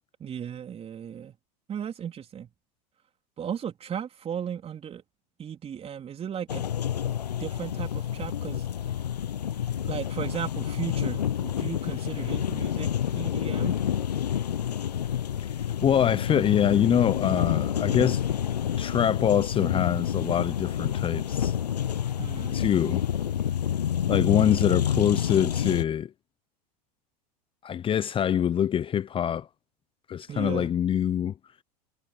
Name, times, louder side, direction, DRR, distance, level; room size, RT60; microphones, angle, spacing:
voice 1, 0.2-1.4 1.7-2.5 3.4-5.0 5.4-6.6 7.4-8.7 9.8-13.7 22.2-22.6 30.3-30.7, right 8 dB, 30° right, 3.8 m, -36 dB
sound 1, 6.5-25.8, left 9 dB, 90° left, 0.7 m, -28 dB
voice 2, 15.4-18.2 18.8-21.6 22.5-23.1 24.1-26.1 27.6-29.5 30.1-31.3, left 9 dB, 25° left, 0.7 m, -24 dB
hypercardioid pair, 95°, 20 cm